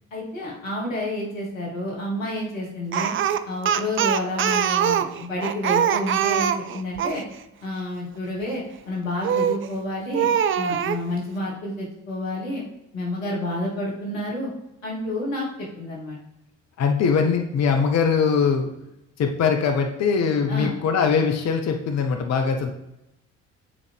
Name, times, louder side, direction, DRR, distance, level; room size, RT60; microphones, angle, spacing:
voice 1, 0.1-3.1 3.5-7.2 7.6-10.3 10.6-12.6 12.9-14.5 14.8-16.2 20.5-20.8, left 1 dB, 85° left, -3 dB, 1.6 m, -29 dB
Speech, 2.9-7.2 9.2-9.7 10.1-11.0, right 9 dB, 35° right, 0.4 m, -23 dB
voice 2, 16.8-18.7 19.2-22.7, left 6 dB, 45° left, 4 dB, 0.8 m, -21 dB
8.4 x 4.1 x 3.4 m, 0.88 s
hypercardioid pair, 50°, 38 cm